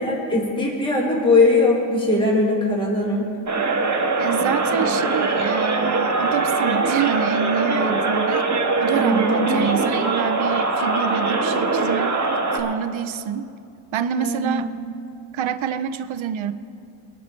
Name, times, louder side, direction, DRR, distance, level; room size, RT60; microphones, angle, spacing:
voice 1, 0.0-3.3 8.9-9.9 14.2-14.7, left 2 dB, 10° left, -2 dB, 1.8 m, -20 dB
sound 1, 3.5-12.6, right 3 dB, 35° right, 1.3 m, -22 dB
voice 2, 4.2-8.5 8.8-12.2 12.5-13.5 13.9-14.7 15.3-16.5, right 8 dB, 70° right, 12 dB, 0.7 m, -26 dB
22.5 x 11.0 x 3.2 m, 2.4 s
wide cardioid pair, 135°, 49 cm